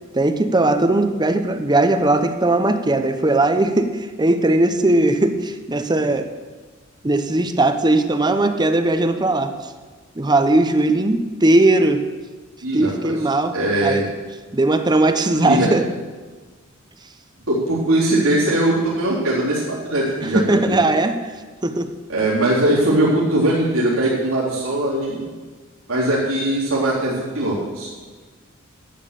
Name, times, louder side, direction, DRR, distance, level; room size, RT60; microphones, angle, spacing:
voice 1, 0.1-6.3 7.0-9.7 10.2-12.0 12.7-13.6 13.8-14.1 14.5-15.9 20.3-21.2 21.6-21.9, right 2 dB, 20° right, 9 dB, 0.8 m, -18 dB
voice 2, 12.6-13.1 13.5-14.0 15.4-15.7 17.5-20.8 22.1-25.2 25.9-27.9, right 1 dB, 85° right, -8 dB, 4.0 m, -20 dB
12.5 x 8.9 x 7.0 m, 1.4 s
head